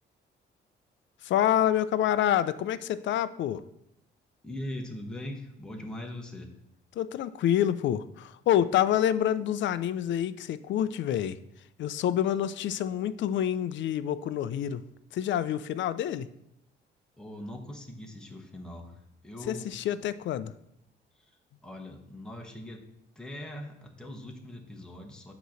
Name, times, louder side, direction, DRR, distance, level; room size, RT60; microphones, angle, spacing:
voice 1, 1.2-3.6 7.0-11.4 11.8-14.8 15.1-16.3 19.5-20.5, left 10 dB, 70° left, 15 dB, 0.5 m, -27 dB
voice 2, 4.4-6.5 17.2-19.7 21.1-21.2 21.6-22.9 23.1-25.3, left 1 dB, 5° left, 1 dB, 1.1 m, -41 dB
8.1 x 3.0 x 6.3 m, 0.78 s
cardioid pair, 90°, 20 cm